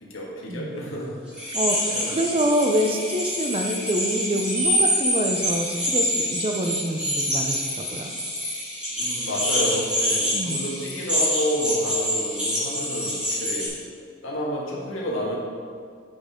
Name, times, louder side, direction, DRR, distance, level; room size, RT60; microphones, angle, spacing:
voice 1, 0.0-2.1 9.0-13.7 14.2-15.4, equal, 70° left, -4 dB, 1.6 m, -30 dB
sound 1, 1.3-13.7, equal, 5° right, 1.9 m, -26 dB
voice 2, 1.5-8.1 10.3-10.6, right 1 dB, 30° right, 4 dB, 0.5 m, -26 dB
8.4 x 5.3 x 3.6 m, 2.1 s
head